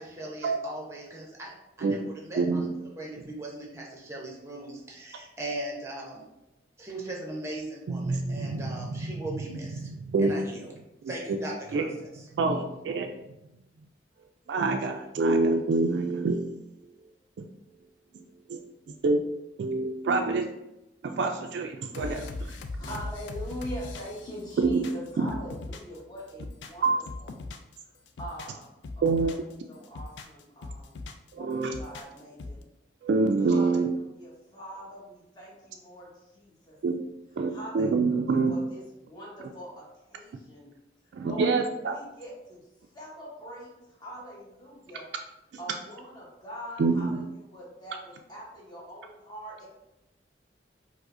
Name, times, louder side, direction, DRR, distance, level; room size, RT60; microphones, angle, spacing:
voice 1, 0.0-6.2 6.8-9.9 10.2-10.7 11.1-12.2, right 1 dB, 15° right, -2 dB, 0.7 m, -39 dB
voice 2, 2.4-2.7 7.9-9.2 9.8-10.3 11.7-11.8 12.3-13.1 14.5-16.6 18.5-18.6 18.9-19.2 19.6-20.5 21.0-22.3 24.6-24.8 25.2-25.3 26.8-27.0 29.0-29.3 31.3-31.7 33.0-33.9 36.8-36.9 37.4-38.5 41.1-42.0 46.8-47.2, right 3 dB, 80° right, 4 dB, 0.3 m, -26 dB
sound 1, 21.9-26.0 26.3-27.7 28.1-29.5 29.8-31.3 31.6-32.6, left 2 dB, 90° left, 0.4 m, -39 dB
voice 3, 22.6-26.9 27.2-27.3 28.2-29.4 29.7-30.9 31.3-32.6 33.4-36.8 37.5-40.7 41.2-42.6 42.9-45.0 45.6-49.7, equal, 25° left, -5 dB, 1.0 m, -43 dB
4.8 x 2.0 x 2.5 m, 0.91 s
head